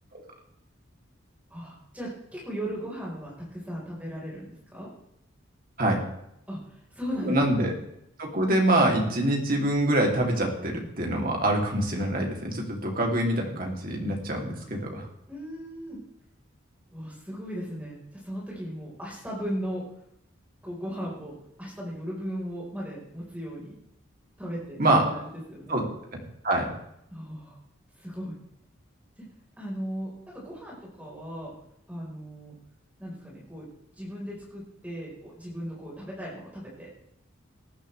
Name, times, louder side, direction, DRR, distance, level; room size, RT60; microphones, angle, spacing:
voice 1, 1.5-4.9 6.5-7.4 15.3-16.0 16.9-19.8 20.6-23.8 24.4-25.0 25.5-25.8 27.1-27.6 28.0-28.4 29.2-29.3 29.6-31.5 31.9-32.5 33.0-33.6 34.0-36.9, equal, 5° right, -5 dB, 4.4 m, -37 dB
voice 2, 7.2-7.7 8.2-15.1 24.8-25.1 25.7-25.9 26.4-26.7, right 1 dB, 45° right, 0 dB, 3.0 m, -25 dB
19.0 x 11.5 x 3.4 m, 0.77 s
head